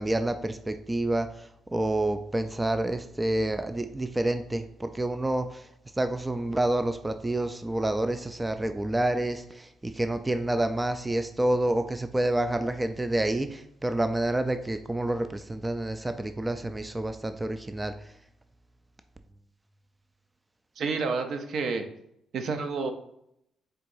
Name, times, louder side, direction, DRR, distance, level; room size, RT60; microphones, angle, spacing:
voice 1, 0.0-5.7 6.0-17.9, right 1 dB, 15° right, 8 dB, 0.3 m, -28 dB
voice 2, 20.8-21.8 22.3-22.9, right 4 dB, 65° right, 6 dB, 0.6 m, -29 dB
4.5 x 3.8 x 2.6 m, 0.77 s
cardioid pair, 90°, 0 cm